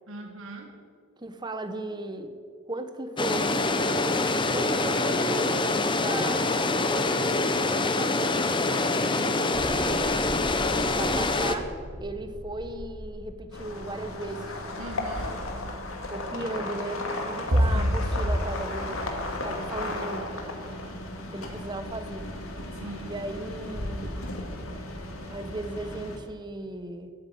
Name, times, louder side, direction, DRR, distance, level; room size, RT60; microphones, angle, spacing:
voice 1, 0.1-0.7 14.8-15.5 17.7-17.9 22.7-23.1 24.5-24.7, right 2 dB, 70° right, 3 dB, 1.8 m, -41 dB
voice 2, 1.2-2.4 2.7-4.1 4.5-5.7 6.0-10.2 10.9-11.7 12.0-14.6 16.1-19.1 19.4-20.4 21.3-22.3 23.0-24.2 25.3-27.1, right 1 dB, 20° right, 8 dB, 1.0 m, -36 dB
sound 1, 3.2-11.6, left 2 dB, 25° left, 0.8 m, -25 dB
sound 2, 9.5-15.0 17.5-18.4, equal, 90° right, 3.0 m, -30 dB
sound 3, 13.5-26.2, left 1 dB, 80° left, 2.2 m, -35 dB
13.0 x 8.8 x 9.4 m, 2.1 s
head